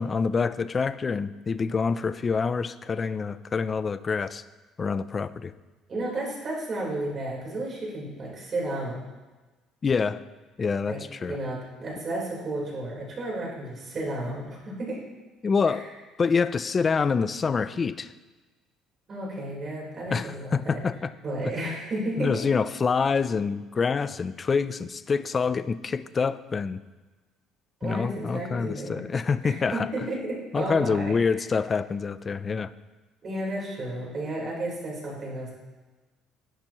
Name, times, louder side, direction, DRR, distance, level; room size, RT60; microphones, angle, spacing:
voice 1, 0.0-4.4 4.8-5.5 9.8-10.2 10.6-11.4 15.4-15.9 16.2-18.1 20.1-21.1 21.4-21.5 22.2-26.8 27.8-29.9 30.5-32.7, left 5 dB, 25° left, 14 dB, 0.4 m, -26 dB
voice 2, 5.9-9.0 10.9-15.0 15.7-15.8 19.1-20.8 21.2-22.4 27.8-29.1 29.4-31.1 33.2-35.5, right 1 dB, 30° right, -4 dB, 3.9 m, -32 dB
15.5 x 10.5 x 3.0 m, 1.2 s
cardioid pair, 160°, 0 cm